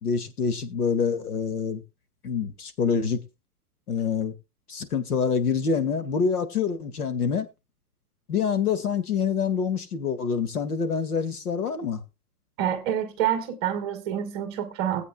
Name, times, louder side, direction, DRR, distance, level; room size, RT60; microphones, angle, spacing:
voice 1, 0.0-1.8 2.2-3.2 3.9-4.3 4.7-7.5 8.3-12.0, left 6 dB, 85° left, 2.1 m, -26 dB
voice 2, 12.6-15.0, right 10 dB, 20° right, 1.0 m, -27 dB
19.0 x 8.2 x 2.3 m
hypercardioid pair, 175°, 44 cm